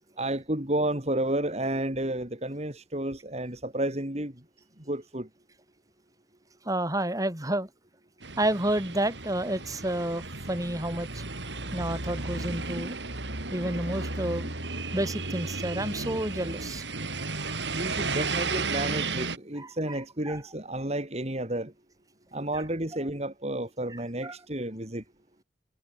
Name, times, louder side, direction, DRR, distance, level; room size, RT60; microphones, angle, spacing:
voice 1, 0.2-4.3 4.9-5.3 17.7-21.7 22.3-25.0, right 1 dB, 35° right, 3.7 m, -31 dB
voice 2, 6.6-7.7 8.4-11.2 11.7-13.0 13.5-14.5 14.9-16.8 19.6-20.4 22.5-22.6 23.9-24.4, right 1 dB, 20° right, 4.4 m, -30 dB
sound 1, 8.2-19.4, right 3 dB, 75° right, 6.0 m, -34 dB
head